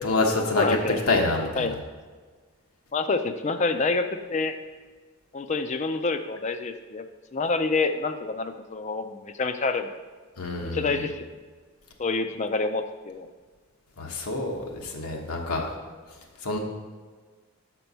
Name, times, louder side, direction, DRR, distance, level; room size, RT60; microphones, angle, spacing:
voice 1, 0.0-0.7 1.1-1.7 10.4-10.9 14.0-15.7 16.4-16.6, left 3 dB, 85° left, 0 dB, 1.0 m, -26 dB
voice 2, 0.5-1.0 1.6-1.7 2.9-4.6 5.3-7.0 7.3-9.9 10.6-11.3 12.0-13.3, left 3 dB, 30° left, 9 dB, 0.4 m, -27 dB
6.9 x 4.5 x 5.4 m, 1.5 s
head